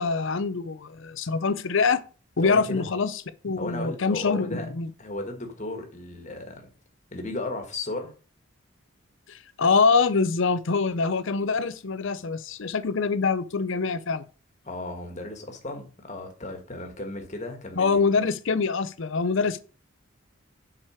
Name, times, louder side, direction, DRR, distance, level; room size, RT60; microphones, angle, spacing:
voice 1, 0.0-2.0 2.4-3.1 3.4-4.9 9.3-14.2 17.8-19.6, left 4 dB, 60° left, 0.6 m, -24 dB
voice 2, 2.4-2.8 3.6-4.7 5.0-6.7 7.1-8.1 14.6-18.0, left 2 dB, 30° left, 1.5 m, -35 dB
7.3 x 4.8 x 4.9 m
head